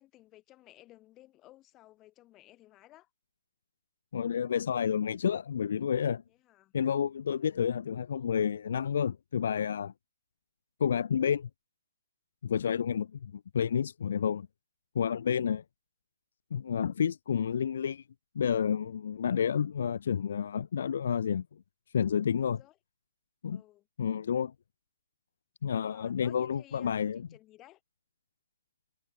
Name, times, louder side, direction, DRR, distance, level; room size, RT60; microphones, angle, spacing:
voice 1, 0.0-3.1 6.3-6.7 22.4-22.8 23.5-23.9 25.7-27.8, left 16 dB, 20° left, 4.2 m, -57 dB
voice 2, 4.1-6.2 6.7-9.9 10.8-11.5 12.4-14.5 14.9-15.6 16.5-18.0 18.3-21.6 21.9-22.6 23.4-23.6 24.0-24.5 25.6-27.2, left 7 dB, 65° left, 0.7 m, -30 dB
hypercardioid pair, 150°, 0 cm